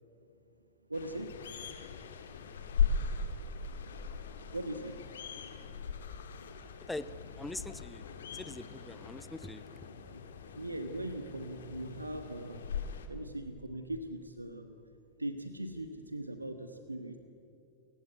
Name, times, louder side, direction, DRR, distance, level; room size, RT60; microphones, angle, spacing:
sound 1, 0.9-13.1, left 5 dB, 65° left, 2.1 m, -39 dB
voice 1, 0.9-1.4 4.5-5.0 9.9-10.2 10.5-12.7 13.1-14.8 15.2-17.2, right 1 dB, 85° right, 8 dB, 1.3 m, -40 dB
voice 2, 7.4-9.9, left 2 dB, 5° left, 15 dB, 0.9 m, -43 dB
29.5 x 16.0 x 9.5 m, 2.7 s
figure-of-eight pair, 90°, 0 cm